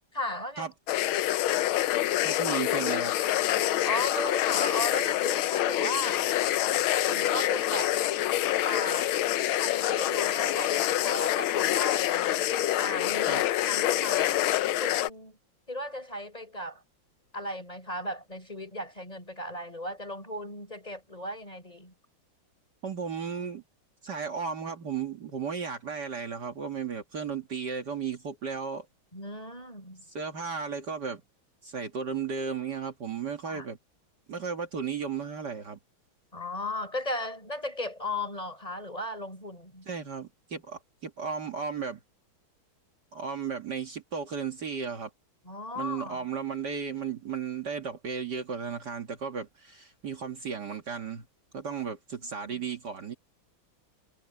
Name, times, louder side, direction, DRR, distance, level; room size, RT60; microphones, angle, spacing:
voice 1, 0.1-0.7 3.8-6.3 7.1-8.0 8.6-12.5 12.8-14.4 14.8-15.4 15.7-16.8 17.3-21.9 29.1-30.0 33.4-33.7 36.3-39.9 45.4-46.2 52.2-52.7, left 1 dB, 15° left, 6.2 m, -36 dB
sound 1, 0.9-15.1, left 13 dB, 85° left, 1.6 m, -26 dB
voice 2, 2.2-3.1 13.3-13.4 22.8-23.6 24.0-28.9 30.1-31.2 31.6-33.8 34.3-35.8 39.9-42.0 43.1-45.1 45.8-51.2 51.5-53.1, right 6 dB, 55° right, 2.3 m, -34 dB
omnidirectional pair, 2.2 m